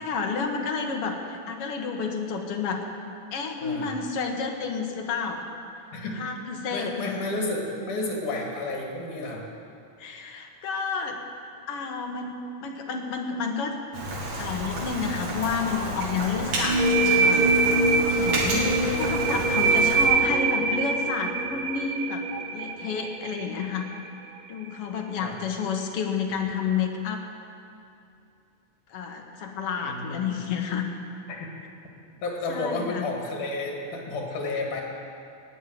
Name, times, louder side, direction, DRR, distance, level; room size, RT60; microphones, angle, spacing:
voice 1, 0.0-2.8 3.3-5.4 6.1-7.1 10.0-11.2 11.7-13.8 14.4-17.4 18.2-22.2 22.5-23.9 24.5-27.2 28.9-30.9 32.5-33.1, left 5 dB, 55° left, 2 dB, 1.9 m, -30 dB
voice 2, 5.9-6.2 6.7-9.4 18.2-18.6 25.2-25.4 29.8-30.3 31.3-31.5 32.2-34.8, left 2 dB, 75° left, 0 dB, 3.6 m, -31 dB
Rain, 13.9-20.1, right 1 dB, 65° right, 3.5 m, -31 dB
sound 1, 16.6-24.1, right 3 dB, 85° right, 1.0 m, -24 dB
16.5 x 6.4 x 9.2 m, 2.6 s
omnidirectional pair, 3.5 m